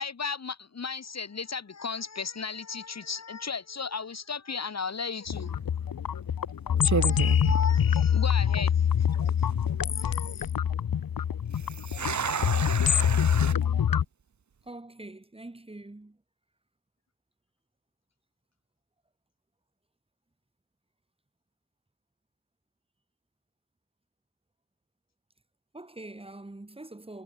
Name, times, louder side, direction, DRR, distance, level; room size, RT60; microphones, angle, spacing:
voice 1, 0.0-5.5 6.8-8.9 9.9-10.5, left 5 dB, 40° left, 7.6 m, -35 dB
sound 1, 5.3-14.0, left 8 dB, 60° left, 1.9 m, -25 dB
sound 2, 5.3-5.6 6.3-6.5 6.8-8.4 8.7-8.8 9.4-9.8 11.5-13.5, right 6 dB, 45° right, 2.6 m, -32 dB
voice 2, 14.6-16.2 25.7-27.2, right 2 dB, 15° right, 7.2 m, -44 dB
wide cardioid pair, 145°, 39 cm